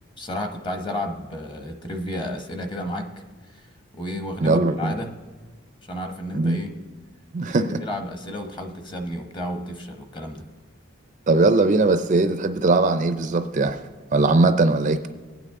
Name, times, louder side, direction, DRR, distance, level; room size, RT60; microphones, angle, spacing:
voice 1, 0.2-3.1 3.4-5.2 5.9-6.7 7.4-10.5, left 1 dB, 20° left, 5 dB, 0.9 m, -32 dB
voice 2, 4.4-4.9 6.3-6.6 7.3-7.7 11.3-13.8 14.1-15.1, right 3 dB, 35° right, 10 dB, 0.4 m, -20 dB
20.0 x 9.0 x 3.6 m, 1.4 s
head